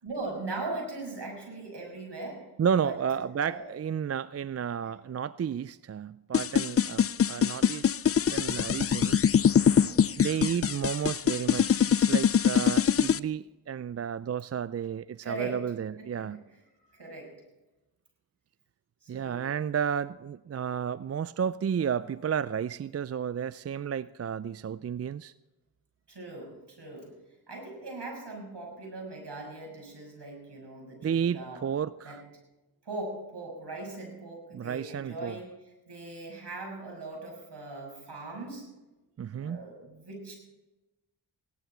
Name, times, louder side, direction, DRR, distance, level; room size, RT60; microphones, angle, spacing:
voice 1, 0.0-2.4 2.8-3.6 9.6-10.1 15.2-15.6 16.0-16.3 16.9-17.3 19.0-19.5 26.1-27.1 27.5-31.6 32.0-32.2 32.8-35.5 35.9-38.6 39.4-40.3, right 2 dB, 65° right, 0 dB, 6.0 m, -40 dB
voice 2, 2.6-8.0 8.3-9.3 10.2-16.4 19.1-25.3 31.0-32.2 34.5-35.4 39.2-39.7, right 8 dB, 35° right, 17 dB, 0.4 m, -32 dB
sound 1, 6.3-13.2, left 8 dB, 35° left, 0.4 m, -23 dB
17.0 x 11.5 x 4.5 m, 1.0 s
cardioid pair, 40°, 45 cm